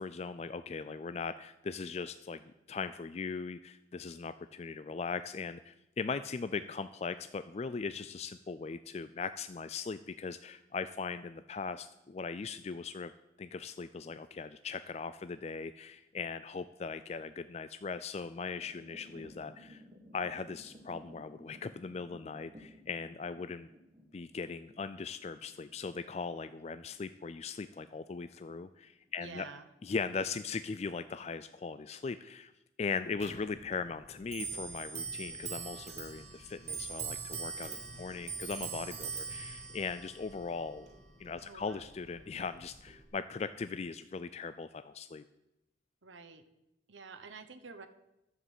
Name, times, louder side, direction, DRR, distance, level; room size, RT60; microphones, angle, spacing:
voice 1, 0.0-2.4 2.7-13.1 13.4-19.8 20.1-23.7 24.1-29.5 29.8-32.5 32.8-40.9 41.2-45.2, left 5 dB, 35° left, 12 dB, 0.3 m, -39 dB
sound 1, 15.4-16.3 16.9-17.3 18.1-29.1 29.5-30.0 30.3-30.4 30.9-31.5, equal, 20° right, 2.0 m, -57 dB
voice 2, 29.2-29.7 41.4-41.9 46.0-46.4 46.9-47.9, right 4 dB, 90° right, 7 dB, 1.1 m, -49 dB
Clock, 33.2-43.1, right 5 dB, 35° right, 1.8 m, -43 dB
11.0 x 7.4 x 8.2 m, 0.91 s
head